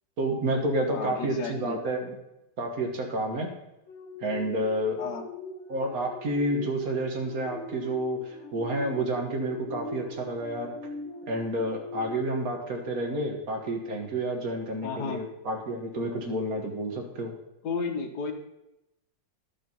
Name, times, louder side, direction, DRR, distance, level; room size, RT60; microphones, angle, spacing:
voice 1, 0.2-2.1 2.6-3.5 4.2-5.0 5.7-10.7 11.3-17.3, right 1 dB, 55° right, 2 dB, 1.7 m, -30 dB
voice 2, 0.9-1.8 5.0-5.2 14.8-15.2 17.6-18.3, left 4 dB, 65° left, 5 dB, 1.5 m, -33 dB
sound 1, 3.9-13.7 14.2-14.4, left 3 dB, 40° left, 2.7 m, -42 dB
11.5 x 5.6 x 5.4 m, 0.91 s
omnidirectional pair, 2.0 m